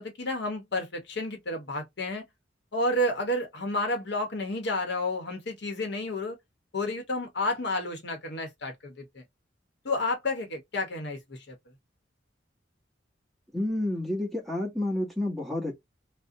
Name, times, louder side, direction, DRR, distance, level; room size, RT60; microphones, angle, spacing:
voice 1, 0.0-2.2 2.7-6.4 6.7-9.2 9.8-11.6, left 1 dB, 65° left, 0.9 m, -31 dB
voice 2, 13.5-15.7, left 1 dB, ahead, 0.9 m, -30 dB
2.5 x 2.1 x 2.6 m
head